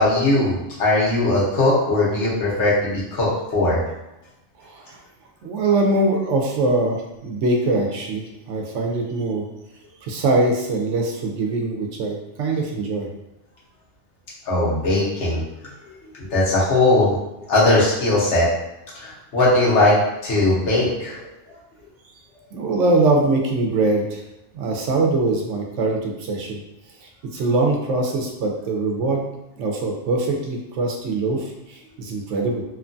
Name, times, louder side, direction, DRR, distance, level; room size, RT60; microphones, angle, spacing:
voice 1, 0.0-3.8 14.5-15.4 16.3-17.1 17.5-18.5 18.9-20.0 20.2-21.2, left 2 dB, 75° left, -6 dB, 1.2 m, -19 dB
voice 2, 4.6-5.0 5.4-9.4 10.0-13.1 22.5-24.2 24.5-26.6 27.3-29.2 29.6-32.6, right 2 dB, 85° right, 1 dB, 0.9 m, -22 dB
2.9 x 2.2 x 2.5 m, 0.95 s
omnidirectional pair, 1.2 m